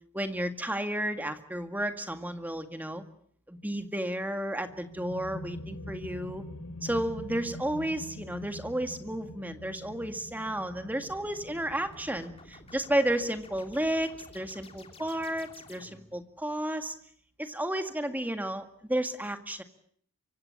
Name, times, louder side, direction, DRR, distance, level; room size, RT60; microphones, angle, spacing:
voice 1, 0.1-3.0 3.5-6.4 6.8-16.9 17.4-19.6, right 1 dB, 10° right, 7 dB, 1.9 m, -32 dB
sound 1, 4.6-16.0, left 1 dB, 80° left, 4.6 m, -45 dB
sound 2, 11.0-16.2, left 3 dB, 25° left, 3.3 m, -53 dB
25.0 x 24.5 x 8.6 m, 0.62 s
head